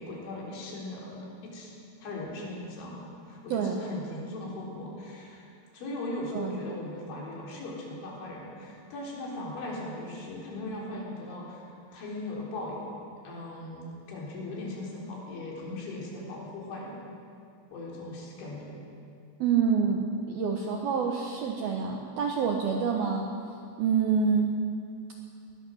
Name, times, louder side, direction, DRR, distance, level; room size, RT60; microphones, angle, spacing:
voice 1, 0.0-1.7 2.0-5.5 5.7-11.7 11.9-12.9 13.2-16.9 17.7-18.8, left 2 dB, 65° left, -3 dB, 6.2 m, -38 dB
voice 2, 3.5-3.8 6.3-6.6 19.4-23.3 23.8-24.6, right 6 dB, 70° right, 2 dB, 2.3 m, -27 dB
21.5 x 20.0 x 6.5 m, 2.4 s
omnidirectional pair, 5.8 m